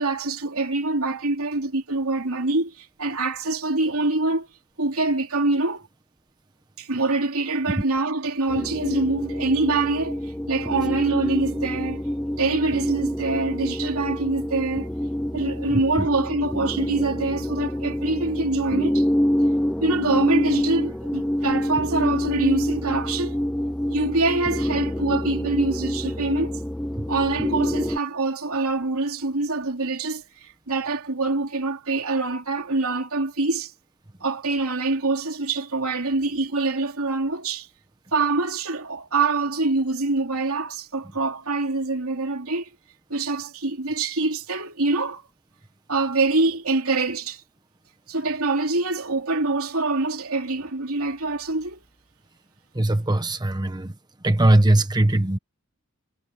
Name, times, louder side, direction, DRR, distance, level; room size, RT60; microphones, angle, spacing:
voice 1, 0.0-4.5 4.8-5.9 6.8-12.0 12.4-14.9 15.3-19.0 19.8-23.4 23.9-26.6 27.1-33.7 34.2-37.7 38.1-42.7 43.1-45.2 45.9-47.4 48.1-51.8, right 3 dB, 80° right, 3.1 m, -25 dB
sound 1, 8.5-28.0, equal, 5° left, 0.5 m, -26 dB
voice 2, 15.7-16.1 27.0-27.1 52.7-53.9 54.2-55.4, right 1 dB, 20° right, 1.1 m, -20 dB
head